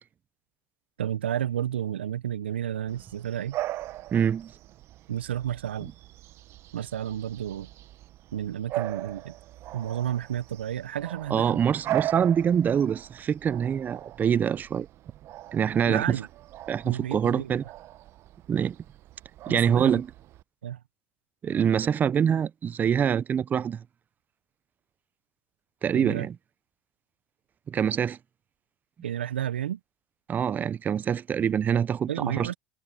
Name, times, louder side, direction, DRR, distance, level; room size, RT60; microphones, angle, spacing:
voice 1, 1.0-3.6 5.1-5.9 6.7-7.7 8.3-9.3 9.7-11.6 15.9-16.3 16.8-17.5 19.5-20.0 20.6-20.8 25.9-26.3 29.0-29.8 32.1-32.5, right 10 dB, 85° right, 0.9 m, -31 dB
Bark / Bird vocalization bird call bird song, 2.9-20.4, right 15 dB, 50° right, 1.2 m, -39 dB
voice 2, 4.1-4.5 11.3-14.9 15.5-16.2 16.7-17.6 18.5-18.8 19.5-20.1 21.4-23.8 25.8-26.3 27.7-28.2 30.3-32.5, right 8 dB, 30° right, 0.6 m, -25 dB
hypercardioid pair, 80°, 6 cm